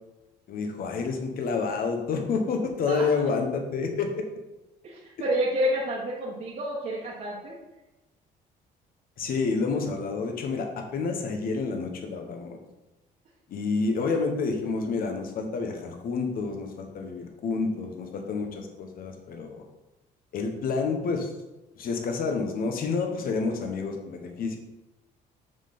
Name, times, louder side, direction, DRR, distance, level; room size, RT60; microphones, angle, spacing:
voice 1, 0.5-4.2 9.2-12.6 13.5-19.6 20.3-21.3 21.8-24.6, left 4 dB, 60° left, 4 dB, 1.4 m, -29 dB
voice 2, 2.9-3.2 4.8-7.6, equal, 50° right, -6 dB, 1.6 m, -29 dB
7.1 x 5.6 x 4.3 m, 1.0 s
cardioid pair, 110°, 17 cm